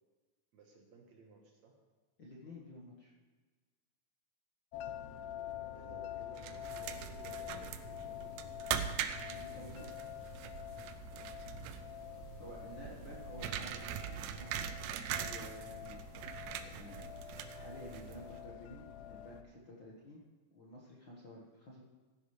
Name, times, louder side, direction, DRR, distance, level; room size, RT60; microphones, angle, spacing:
voice 1, 0.5-1.8 5.3-8.7, right 4 dB, 60° right, 1 dB, 2.3 m, -59 dB
voice 2, 2.2-3.1 9.2-9.9 12.4-16.0 16.5-20.2 20.5-21.8, left 1 dB, 45° left, -4 dB, 1.6 m, -52 dB
sound 1, 4.7-19.4, left 10 dB, 85° left, 1.4 m, -47 dB
sound 2, 6.4-18.4, right 9 dB, 80° right, 2.2 m, -42 dB
16.5 x 10.0 x 3.3 m, 1.4 s
omnidirectional pair, 3.9 m